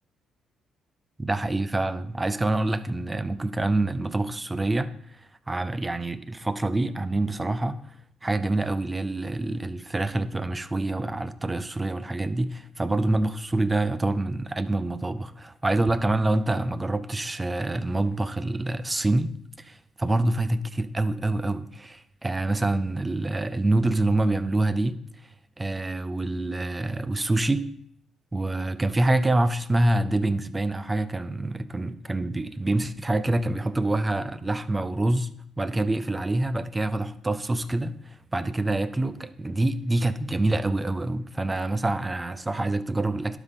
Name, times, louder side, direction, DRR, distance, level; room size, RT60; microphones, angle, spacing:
voice 1, 1.2-5.2 5.5-7.8 8.2-25.0 25.6-27.7 28.3-35.3 35.6-43.4, right 2 dB, 20° right, 0.5 m, -26 dB
12.0 x 5.4 x 3.7 m
cardioid pair, 90°, 0 cm